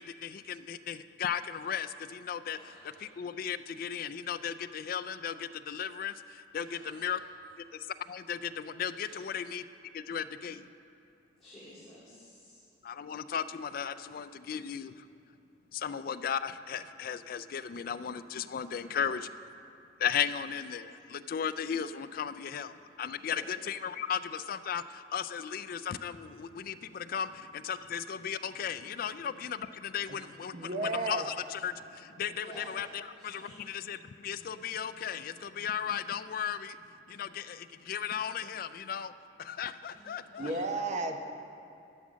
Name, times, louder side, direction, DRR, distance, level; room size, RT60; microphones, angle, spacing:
voice 1, 0.0-2.6 3.0-7.2 7.6-9.6 9.9-10.7 12.8-15.1 15.7-19.3 20.0-39.1 39.4-40.5, left 8 dB, 50° left, 13 dB, 0.3 m, -36 dB
voice 2, 2.5-3.1 6.5-7.3 9.0-9.3 11.4-12.6 18.7-19.1 23.4-23.5 32.4-33.6 39.9-40.6, equal, ahead, -14 dB, 3.2 m, -52 dB
voice 3, 30.5-31.2 40.4-41.2, right 2 dB, 40° right, 5 dB, 0.8 m, -32 dB
12.0 x 7.4 x 6.3 m, 2.6 s
head